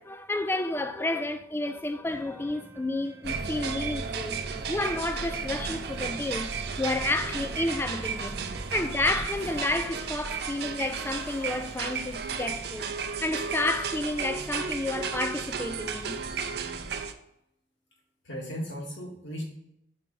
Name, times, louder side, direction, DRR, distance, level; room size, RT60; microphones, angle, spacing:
voice 1, 0.0-4.4 4.7-6.5 6.8-8.4 8.7-12.9 13.2-16.2, left 2 dB, 10° left, 0.3 m, -30 dB
sound 1, 2.0-17.0, right 1 dB, 15° right, 0.9 m, -49 dB
sound 2, 3.2-17.1, right 5 dB, 55° right, 0.5 m, -34 dB
sound 3, 5.9-7.5 7.8-7.9 8.5-8.9 10.6-12.6, left 2 dB, 55° left, 1.9 m, -52 dB
voice 2, 18.3-19.4, equal, 75° left, 2.0 m, -36 dB
5.1 x 4.4 x 5.2 m
head